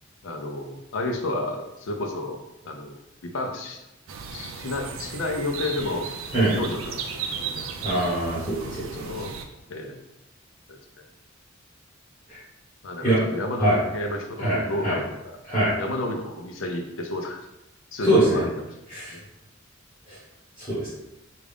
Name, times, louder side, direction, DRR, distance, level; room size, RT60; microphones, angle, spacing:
voice 1, 0.2-3.0 3.2-3.8 4.3-6.1 6.4-7.8 8.6-9.3 9.7-10.0 10.7-10.8 12.8-15.4 15.8-17.4 17.9-18.5 19.1-19.2, left 1 dB, 75° left, 3 dB, 0.5 m, -31 dB
sound 1, 4.1-9.5, right 6 dB, 85° right, 0.4 m, -35 dB
voice 2, 7.8-9.1 12.3-12.4 13.0-13.2 13.6-13.8 14.4-15.0 15.5-15.7 18.0-18.4 18.9-19.1 20.1-20.2 20.6-20.9, right 1 dB, 15° left, -13 dB, 1.5 m, -23 dB
3.6 x 2.4 x 3.5 m, 0.93 s
head